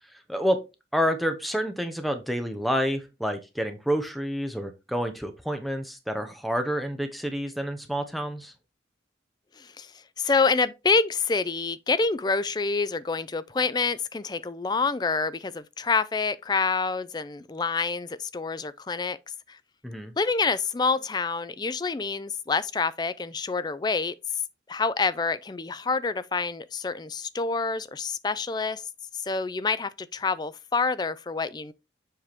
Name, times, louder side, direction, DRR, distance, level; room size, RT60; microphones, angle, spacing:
voice 1, 0.1-0.6 0.9-8.5 19.8-20.1, equal, ahead, 0.8 m, -28 dB
voice 2, 9.6-9.9 10.2-19.2 19.5-19.6 20.2-24.1 24.7-28.8 29.2-31.7, left 4 dB, 20° left, 0.4 m, -27 dB
7.4 x 4.7 x 3.5 m
head